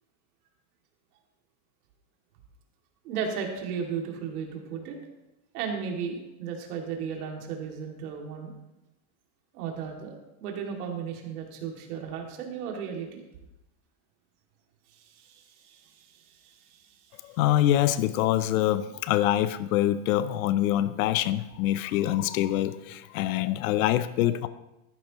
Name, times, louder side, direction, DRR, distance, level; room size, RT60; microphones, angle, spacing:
voice 1, 3.0-5.0 5.5-8.5 9.5-13.2 14.9-17.2, right 6 dB, 90° right, 1 dB, 2.6 m, -35 dB
voice 2, 17.3-24.5, left 13 dB, 70° left, 14 dB, 0.7 m, -25 dB
14.5 x 12.0 x 3.0 m, 0.95 s
supercardioid pair, 170°, 44 cm